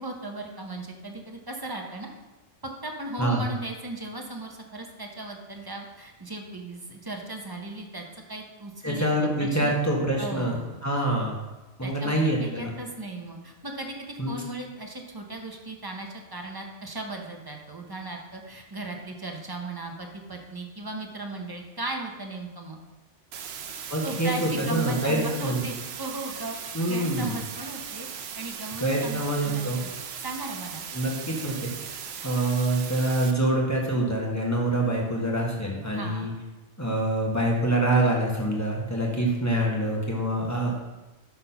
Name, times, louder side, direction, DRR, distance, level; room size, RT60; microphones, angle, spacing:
voice 1, 0.0-2.1 2.6-9.1 9.4-9.7 10.2-10.8 11.8-22.8 24.0-28.1 28.4-29.9 30.2-30.8 35.9-36.4, right 2 dB, 25° right, 2 dB, 0.7 m, -37 dB
voice 2, 8.8-10.6 10.8-11.4 11.8-12.7 14.2-14.3 23.9-25.6 26.7-27.4 28.8-29.8 30.9-31.7 32.2-36.3 36.8-40.8, right 1 dB, 15° left, -2 dB, 1.1 m, -25 dB
sound 1, 23.3-33.3, right 7 dB, 70° right, 0.8 m, -38 dB
5.9 x 4.2 x 5.6 m, 1.1 s
omnidirectional pair, 1.2 m